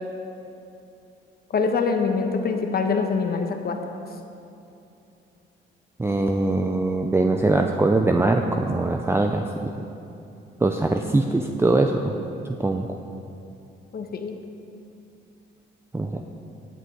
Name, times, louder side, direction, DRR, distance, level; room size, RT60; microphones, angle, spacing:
voice 1, 1.5-3.8 13.9-14.4, left 5 dB, 50° left, 5 dB, 1.2 m, -24 dB
voice 2, 6.0-9.4 10.6-12.1 12.4-12.9 15.9-16.2, right 2 dB, 10° right, 4 dB, 0.5 m, -22 dB
16.5 x 8.2 x 3.9 m, 2.7 s
cardioid pair, 90°, 20 cm